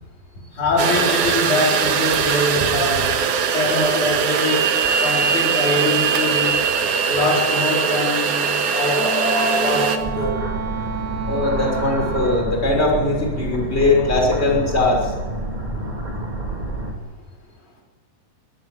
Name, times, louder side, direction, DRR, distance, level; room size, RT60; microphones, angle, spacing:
voice 1, 0.5-3.2 3.5-6.6 7.1-10.4, left 2 dB, 65° left, -2 dB, 5.9 m, -23 dB
sound 1, 0.8-10.0, right 6 dB, 70° right, 3.0 m, -21 dB
Wind instrument woodwind instrument, 8.9-12.6, right 6 dB, 45° right, 1.6 m, -30 dB
sound 2, 10.0-16.9, right 1 dB, 15° right, 4.5 m, -28 dB
voice 2, 11.3-15.1, left 2 dB, 20° left, 0 dB, 6.3 m, -20 dB
24.0 x 17.0 x 9.1 m, 1.4 s
omnidirectional pair, 3.7 m